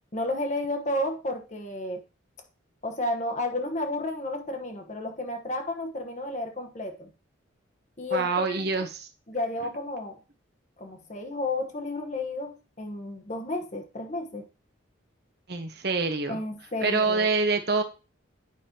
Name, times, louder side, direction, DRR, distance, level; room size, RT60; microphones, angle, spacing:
voice 1, 0.1-2.0 2.8-7.1 8.0-8.7 9.3-10.2 10.8-14.5 16.3-17.3, left 2 dB, 35° left, 1.1 m, -32 dB
voice 2, 8.1-9.1 15.5-16.4 16.8-17.8, right 4 dB, 55° right, 1.1 m, -26 dB
9.2 x 5.3 x 2.9 m
head